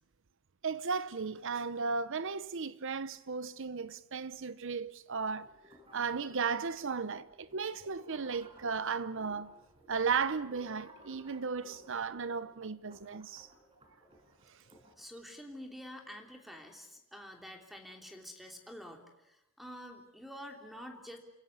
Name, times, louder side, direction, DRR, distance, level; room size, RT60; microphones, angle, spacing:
voice 1, 0.6-5.5 5.9-9.5 9.9-13.5, right 5 dB, 65° right, 0.8 m, -35 dB
sound 1, 5.4-15.0, equal, 25° right, 5.7 m, -58 dB
voice 2, 15.0-21.2, equal, ahead, 3.0 m, -48 dB
29.0 x 16.5 x 9.7 m
head